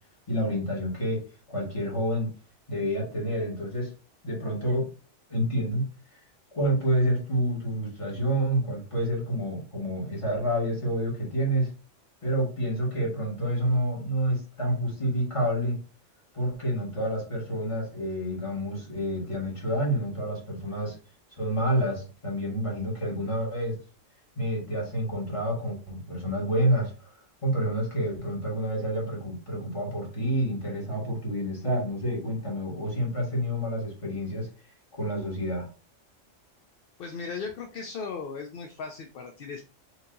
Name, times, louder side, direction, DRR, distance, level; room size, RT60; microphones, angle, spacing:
voice 1, 0.3-2.3 2.7-3.9 4.2-4.9 5.3-5.9 6.5-11.7 12.2-15.8 16.3-21.0 21.4-23.8 24.3-27.1 27.4-34.5 34.9-35.7, equal, 25° left, -2 dB, 1.6 m, -28 dB
voice 2, 37.0-39.6, left 5 dB, 60° left, 3 dB, 0.6 m, -37 dB
4.5 x 2.8 x 3.8 m, 0.36 s
omnidirectional pair, 1.3 m